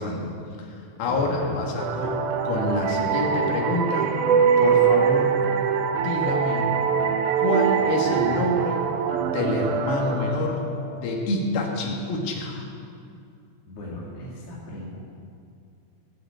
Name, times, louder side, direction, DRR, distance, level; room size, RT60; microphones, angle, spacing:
voice 1, 0.0-2.2 2.4-4.2 4.6-5.4 5.9-6.7 7.4-8.9 9.3-12.7, left 2 dB, 70° left, 0 dB, 3.5 m, -27 dB
voice 2, 1.1-1.9 13.7-15.0, left 2 dB, 45° left, -6 dB, 2.6 m, -37 dB
sound 1, 1.8-11.2, right 7 dB, 80° right, 2.4 m, -23 dB
18.0 x 6.7 x 8.4 m, 2.4 s
omnidirectional pair, 4.6 m